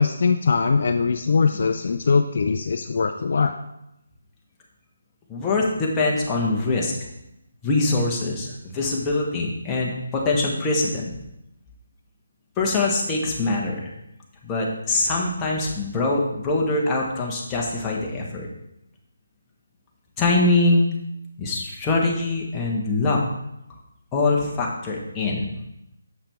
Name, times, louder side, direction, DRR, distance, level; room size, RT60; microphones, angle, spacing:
voice 1, 0.0-3.6, left 5 dB, 55° left, 6 dB, 0.4 m, -21 dB
voice 2, 5.3-6.9 7.6-11.1 12.6-13.9 14.4-18.5 20.2-20.9 21.4-23.2 24.1-25.5, left 2 dB, 15° left, -3 dB, 1.2 m, -23 dB
6.9 x 5.6 x 3.5 m, 0.84 s
figure-of-eight pair, 150°, 0 cm